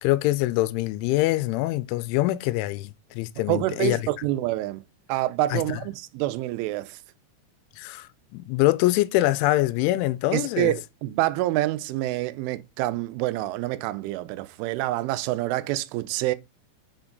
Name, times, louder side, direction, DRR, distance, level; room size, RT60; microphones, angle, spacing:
voice 1, 0.0-4.0 5.5-5.6 7.8-10.7, left 17 dB, 85° left, 2.9 m, -24 dB
voice 2, 3.5-4.8 5.1-7.0 10.3-16.4, right 16 dB, 85° right, 3.1 m, -27 dB
6.8 x 4.5 x 3.8 m
omnidirectional pair, 5.4 m